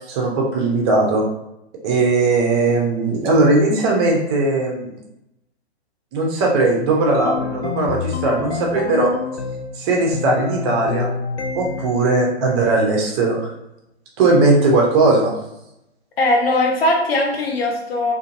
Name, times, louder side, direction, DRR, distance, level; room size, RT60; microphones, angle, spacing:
voice 1, 0.1-1.2 1.8-5.0 6.1-9.1 9.8-11.1 11.5-13.5 14.2-15.3, right 2 dB, 25° right, -1 dB, 0.5 m, -18 dB
sound 1, 7.1-9.8 10.1-12.0, left 5 dB, 80° left, 0.5 m, -27 dB
voice 2, 16.2-18.1, left 1 dB, 65° left, 1 dB, 0.9 m, -19 dB
2.5 x 2.5 x 2.6 m, 0.85 s
figure-of-eight pair, 120°, 33 cm